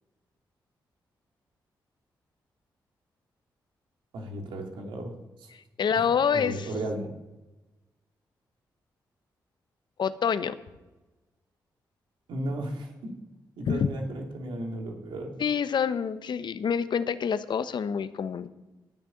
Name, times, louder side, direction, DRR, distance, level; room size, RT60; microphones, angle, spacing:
voice 1, 4.1-5.5 5.9-6.1 6.3-7.1 12.3-13.1 13.6-15.3, right 1 dB, 80° right, 1 dB, 2.8 m, -35 dB
voice 2, 5.8-6.7 10.0-10.6 13.7-13.9 15.4-18.5, left 7 dB, 65° left, 13 dB, 0.9 m, -27 dB
12.5 x 7.0 x 9.7 m, 1.1 s
supercardioid pair, 50°, 8 cm